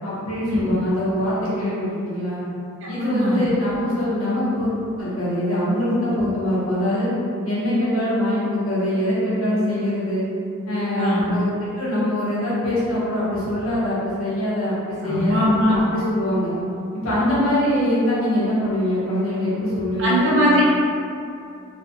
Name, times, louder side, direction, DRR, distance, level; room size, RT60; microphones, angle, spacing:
voice 1, 0.0-2.4 2.9-4.7 5.0-7.1 7.4-10.3 10.7-16.5 17.0-20.3, left 1 dB, 85° left, -9 dB, 1.1 m, -23 dB
voice 2, 2.8-3.4 11.0-11.3 15.0-15.8 20.0-20.6, equal, 65° right, -7 dB, 0.7 m, -20 dB
3.1 x 2.3 x 2.7 m, 2.5 s
head